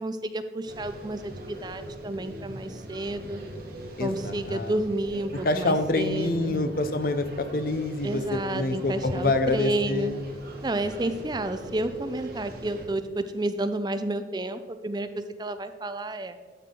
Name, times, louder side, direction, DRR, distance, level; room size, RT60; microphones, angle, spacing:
voice 1, 0.0-3.4 4.0-6.6 8.0-10.1 10.6-16.4, right 2 dB, 25° right, 10 dB, 0.5 m, -31 dB
sound 1, 0.6-12.9, right 1 dB, 55° right, 1.5 m, -40 dB
voice 2, 4.0-4.7 5.4-10.2, left 2 dB, 50° left, 9 dB, 0.6 m, -26 dB
12.0 x 6.1 x 3.8 m, 1.4 s
head